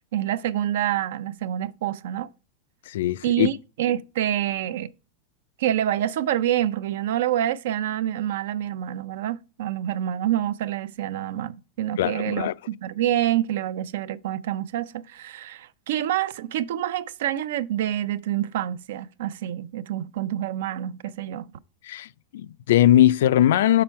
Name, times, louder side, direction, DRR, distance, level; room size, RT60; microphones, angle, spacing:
voice 1, 0.1-2.3 3.2-4.9 5.6-21.5, right 12 dB, 75° right, 0.4 m, -27 dB
voice 2, 2.9-3.5 12.0-12.5 21.8-23.8, left 12 dB, 80° left, 0.3 m, -20 dB
6.0 x 5.8 x 4.4 m
supercardioid pair, 155°, 0 cm